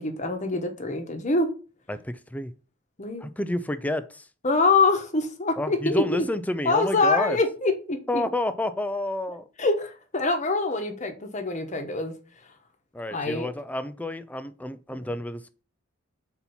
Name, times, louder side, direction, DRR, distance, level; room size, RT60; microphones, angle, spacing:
voice 1, 0.0-1.5 3.0-3.3 4.4-6.3 6.6-8.2 9.6-12.1 13.1-13.5, left 3 dB, 35° left, 6 dB, 1.0 m, -25 dB
voice 2, 1.9-2.5 3.2-4.3 5.6-7.4 8.1-9.4 12.9-15.4, left 1 dB, 10° left, 12 dB, 0.4 m, -29 dB
4.3 x 4.2 x 5.6 m, 0.36 s
head